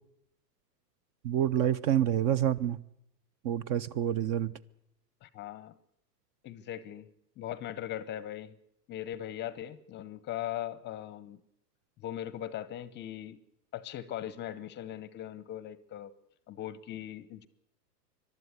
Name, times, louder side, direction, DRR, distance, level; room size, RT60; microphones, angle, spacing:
voice 1, 1.2-2.8 3.4-4.5, right 10 dB, 35° right, 0.7 m, -27 dB
voice 2, 5.2-5.7 6.4-7.1 7.4-8.5 8.9-11.4 12.0-13.4 13.7-16.1 16.5-17.5, left 11 dB, 20° left, 0.7 m, -39 dB
22.5 x 12.5 x 9.7 m
hypercardioid pair, 135°, 49 cm